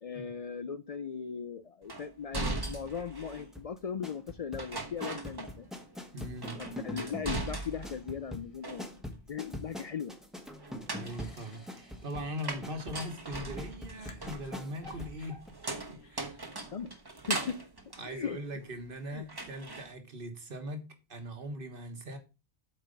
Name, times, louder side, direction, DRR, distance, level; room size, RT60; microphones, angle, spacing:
voice 1, 0.0-5.7 6.6-10.1 16.7-16.9 17.3-17.6 18.1-18.4 19.1-19.3, left 7 dB, 55° left, 0.4 m, -38 dB
sound 1, 1.9-3.5 4.6-5.9 6.2-8.0 8.4-9.2 10.6-18.9 19.3-19.9, right 2 dB, 25° right, 1.0 m, -40 dB
sound 2, 3.5-15.2 15.5-15.6, left 1 dB, ahead, 1.1 m, -43 dB
voice 2, 6.1-6.6 11.0-15.4 15.9-16.4 18.0-20.8 21.1-22.2, equal, 55° right, 1.6 m, -40 dB
sound 3, 7.3-8.7 10.2-10.3 10.9-12.5 13.9-15.4 16.0-16.5, left 4 dB, 75° left, 1.5 m, -61 dB
8.1 x 4.4 x 5.2 m
omnidirectional pair, 1.1 m